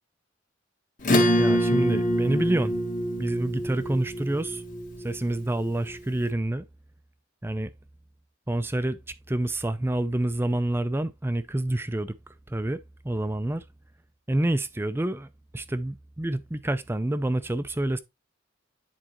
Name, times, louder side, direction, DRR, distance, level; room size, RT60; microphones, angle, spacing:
Acoustic guitar / Strum, 1.0-6.0, equal, 40° left, 1.5 m, -25 dB
voice 1, 1.4-2.8 3.2-4.6 5.0-6.6 7.4-7.7 8.5-9.0 9.3-12.1 12.5-12.8 13.0-13.6 14.3-15.3 15.5-18.0, right 1 dB, 10° right, 0.4 m, -27 dB
10.0 x 4.1 x 2.9 m
head